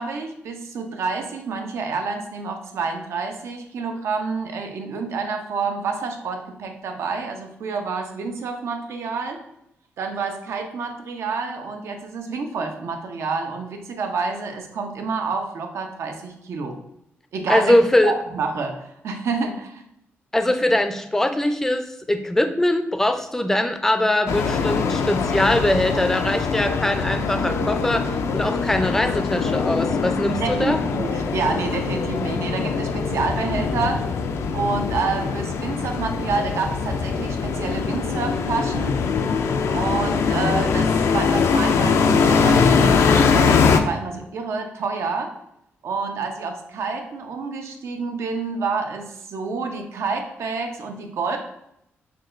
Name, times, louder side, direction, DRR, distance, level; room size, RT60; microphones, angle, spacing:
voice 1, 0.0-9.4 10.0-16.8 17.3-19.8 30.4-34.1 34.5-39.0 39.7-45.3 45.8-51.4, right 4 dB, 80° right, 4 dB, 0.5 m, -28 dB
voice 2, 17.5-18.1 20.3-28.0 28.3-30.8, left 1 dB, 10° left, 8 dB, 0.3 m, -21 dB
sound 1, 24.3-43.8, left 5 dB, 85° left, 0.3 m, -22 dB
5.9 x 2.2 x 2.4 m, 0.79 s
cardioid pair, 110°, 5 cm